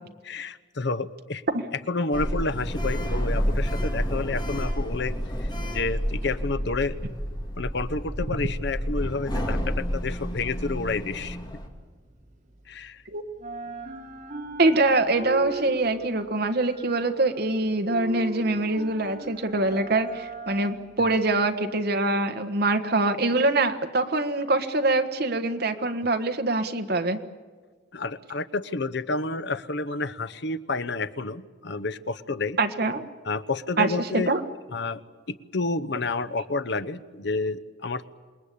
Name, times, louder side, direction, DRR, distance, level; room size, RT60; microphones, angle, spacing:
voice 1, 0.2-1.4 1.9-5.1 5.4-7.0 7.6-11.4 12.7-13.0 27.9-32.6 33.2-34.3 34.7-35.0 35.5-38.1, left 3 dB, 65° left, 11 dB, 0.9 m, -30 dB
Sliding door, 2.1-11.7, equal, 25° left, 2.6 m, -29 dB
sound 1, 11.4-13.0 13.3-21.4, right 3 dB, 40° right, 3.3 m, -40 dB
voice 2, 14.6-27.2 32.6-33.0 33.8-34.4, right 2 dB, 60° right, 7 dB, 1.5 m, -24 dB
27.5 x 20.0 x 8.6 m, 1.5 s
head